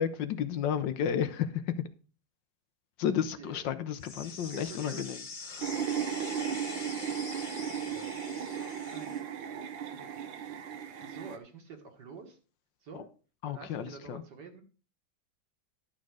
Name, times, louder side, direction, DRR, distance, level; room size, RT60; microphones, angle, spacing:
voice 1, 0.0-1.7 3.0-5.2 5.5-5.9 12.9-13.0 13.4-14.2, left 8 dB, 70° left, 1.3 m, -32 dB
sound 1, 4.0-9.2, left 4 dB, 35° left, 0.8 m, -44 dB
voice 2, 4.3-5.0 7.8-8.5 8.9-9.1 9.9-10.3 10.9-12.4 12.8-13.1 13.5-14.6, right 5 dB, 60° right, 2.2 m, -48 dB
sound 2, 5.6-11.4, right 8 dB, 75° right, 1.7 m, -36 dB
12.0 x 6.3 x 4.8 m
omnidirectional pair, 2.2 m